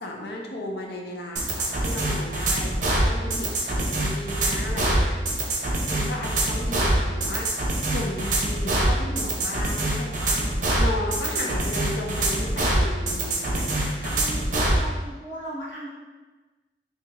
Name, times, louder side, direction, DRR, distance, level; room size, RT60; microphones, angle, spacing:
voice 1, 0.0-3.5 3.8-5.2 5.9-10.4 10.8-14.2, left 1 dB, 65° left, 0 dB, 0.6 m, -34 dB
sound 1, 1.4-14.8, right 1 dB, 45° right, 0.7 m, -24 dB
voice 2, 14.1-15.9, right 1 dB, 90° left, -8 dB, 1.3 m, -37 dB
2.9 x 2.8 x 3.7 m, 1.2 s
head